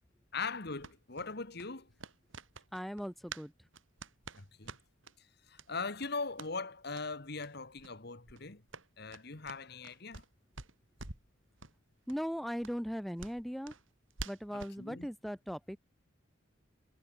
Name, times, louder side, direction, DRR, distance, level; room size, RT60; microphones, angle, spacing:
voice 1, 0.3-1.9 4.4-4.8 5.5-8.6 9.0-10.2 14.5-15.1, left 4 dB, 55° left, 1.8 m, -40 dB
sound 1, 0.8-3.5 3.7-5.2 5.5-5.7 6.0-6.5 6.9-7.1 7.4-7.5 7.8-8.0 8.2-10.3 10.5-11.3 11.6-11.7 12.1-12.2 12.6-14.8, right 3 dB, 75° right, 3.7 m, -48 dB
voice 2, 2.7-3.5 12.1-13.7 14.3-15.8, equal, ahead, 1.0 m, -38 dB
head